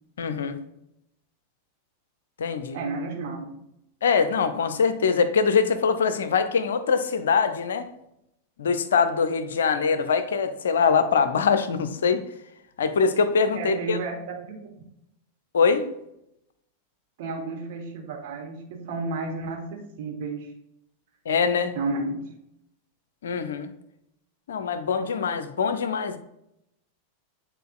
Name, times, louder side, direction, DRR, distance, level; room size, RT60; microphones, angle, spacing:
voice 1, 0.2-0.6 2.4-2.8 4.0-7.9 8.6-12.2 12.8-14.0 15.5-15.9 21.3-21.8 23.2-23.7 24.5-26.2, left 5 dB, 65° left, 10 dB, 0.5 m, -23 dB
voice 2, 2.7-3.6 13.5-14.7 17.2-20.5 21.7-22.3, right 3 dB, 50° right, 2 dB, 1.2 m, -32 dB
9.1 x 4.3 x 2.4 m, 0.81 s
figure-of-eight pair, 90°, 0 cm